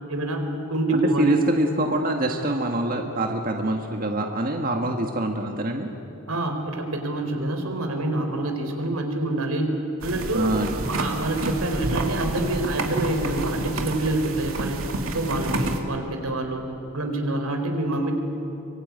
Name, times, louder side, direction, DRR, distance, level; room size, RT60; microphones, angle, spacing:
voice 1, 0.1-1.3 6.3-9.7 10.0-10.5 10.8-16.6 16.9-18.1, right 1 dB, 90° right, 5 dB, 4.0 m, -26 dB
voice 2, 0.9-5.9 10.3-10.8, right 1 dB, 40° right, 3 dB, 1.6 m, -25 dB
sound 1, 10.0-15.8, right 2 dB, 70° right, 2.5 m, -29 dB
24.5 x 23.5 x 9.5 m, 2.9 s
head